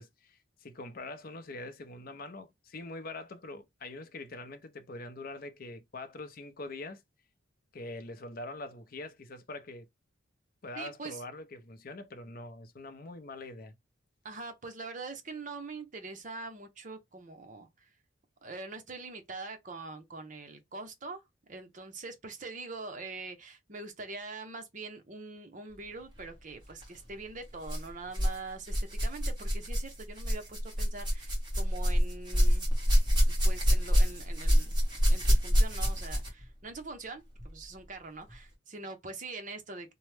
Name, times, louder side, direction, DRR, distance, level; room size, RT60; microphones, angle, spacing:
voice 1, 0.0-7.0 7.7-9.9 10.6-13.7, left 2 dB, 45° left, 0.5 m, -43 dB
voice 2, 10.8-11.2 14.2-17.9 18.4-21.2 21.5-32.7 33.3-34.7 35.1-37.2 37.5-39.9, right 3 dB, 40° right, 0.7 m, -43 dB
sound 1, 26.7-26.9 27.6-28.4 28.6-36.4 37.4-37.5 38.3-38.4, equal, 20° right, 1.4 m, -26 dB
3.0 x 2.1 x 3.2 m
head